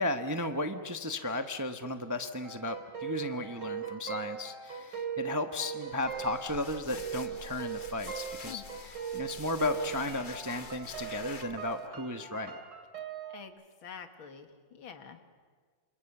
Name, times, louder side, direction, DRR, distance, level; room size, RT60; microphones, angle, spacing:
voice 1, 0.0-12.6, left 2 dB, 20° right, 7 dB, 0.6 m, -35 dB
sound 1, 2.4-13.4, right 7 dB, 60° right, 3.2 m, -40 dB
sound 2, 5.9-11.9, left 5 dB, 40° left, 0.7 m, -48 dB
voice 2, 13.3-15.2, left 7 dB, 85° left, 7 dB, 2.5 m, -47 dB
27.0 x 27.0 x 7.2 m, 1.5 s
omnidirectional pair, 2.2 m